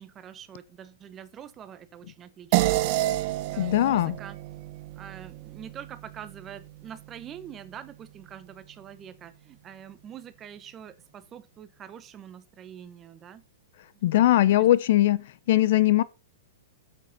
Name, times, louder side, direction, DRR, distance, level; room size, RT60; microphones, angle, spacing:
voice 1, 0.0-3.0 3.5-4.4 5.0-13.4 14.1-14.6, right 9 dB, 20° right, 1.0 m, -45 dB
sound 1, 2.5-7.2, right 17 dB, 45° right, 0.9 m, -30 dB
voice 2, 3.6-4.2 14.0-16.0, left 14 dB, 60° left, 0.8 m, -21 dB
9.2 x 7.8 x 4.2 m
hypercardioid pair, 145°, 0 cm